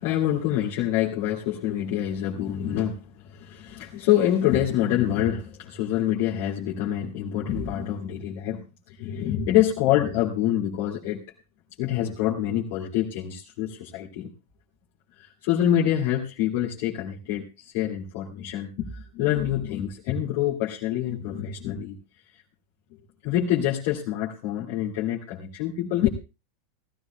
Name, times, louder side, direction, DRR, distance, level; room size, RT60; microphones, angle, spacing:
voice 1, 0.0-3.0 3.2-8.6 8.9-11.2 11.8-14.3 15.2-22.0 23.2-26.1, left 11 dB, 60° left, -4 dB, 2.3 m, -26 dB
19.5 x 14.5 x 2.3 m, 0.28 s
hypercardioid pair, 100°, 0 cm